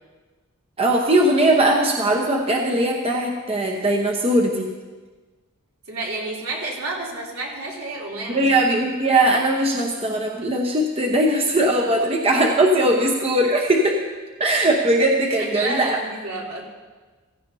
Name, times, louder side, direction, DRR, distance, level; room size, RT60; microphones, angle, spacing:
voice 1, 0.8-4.7 8.3-14.0 14.4-16.0, right 1 dB, 25° right, 0 dB, 0.9 m, -20 dB
voice 2, 5.9-8.4 15.3-16.6, right 2 dB, 80° right, -4 dB, 3.2 m, -30 dB
15.5 x 15.5 x 2.8 m, 1.3 s
head